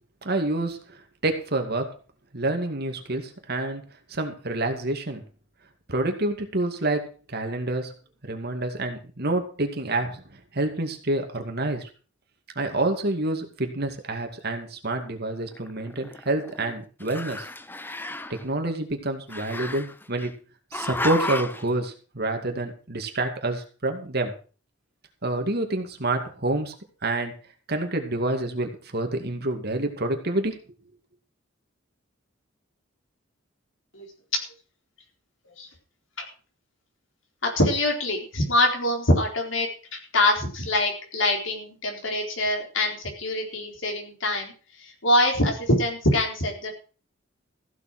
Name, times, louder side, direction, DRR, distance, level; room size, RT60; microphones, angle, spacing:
voice 1, 0.2-1.9 2.3-3.8 4.1-5.2 5.9-7.9 8.2-11.9 12.6-17.5 18.3-20.3 20.7-24.3 25.2-26.7 27.0-27.3 27.7-30.6, right 2 dB, 55° right, 5 dB, 2.3 m, -28 dB
Growling, 15.5-16.7 17.0-18.4 19.3-20.3 20.7-21.7, left 2 dB, 10° left, 0.6 m, -33 dB
voice 2, 37.4-46.7, left 1 dB, 70° left, 2 dB, 4.1 m, -24 dB
15.0 x 7.3 x 6.1 m, 0.38 s
head